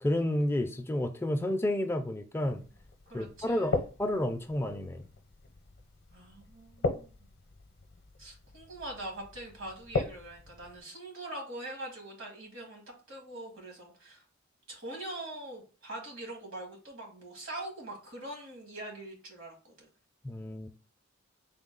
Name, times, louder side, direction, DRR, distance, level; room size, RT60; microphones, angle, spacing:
voice 1, 0.0-2.6 3.1-3.7 4.0-5.0 20.2-20.7, left 1 dB, 10° left, 0.4 m, -30 dB
sound 1, 2.4-10.8, left 3 dB, 55° left, 0.6 m, -38 dB
voice 2, 3.1-3.8 6.1-7.1 8.2-14.2 14.7-19.9, right 1 dB, 70° right, 1.5 m, -43 dB
3.7 x 2.3 x 3.8 m
head